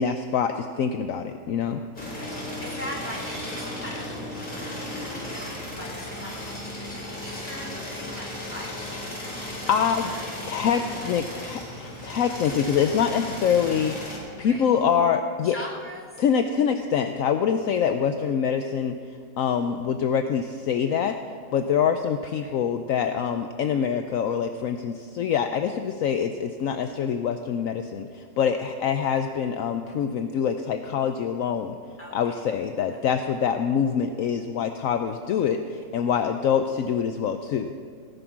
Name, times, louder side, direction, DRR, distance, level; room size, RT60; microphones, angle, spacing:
voice 1, 0.0-1.8 9.3-10.1 10.5-14.0 14.4-15.6 16.2-19.0 19.4-21.2 21.5-31.8 32.1-37.7, left 7 dB, 65° left, 7 dB, 1.0 m, -25 dB
sound 1, 2.0-14.2, left 1 dB, 30° left, 3.6 m, -35 dB
voice 2, 2.1-4.1 5.1-10.2 10.7-11.4 14.4-14.9 15.4-16.1 22.4-22.5 29.0-29.1 32.0-32.4 32.9-33.0, left 1 dB, 10° left, -3 dB, 2.7 m, -41 dB
17.5 x 11.0 x 6.1 m, 2.2 s
omnidirectional pair, 1.6 m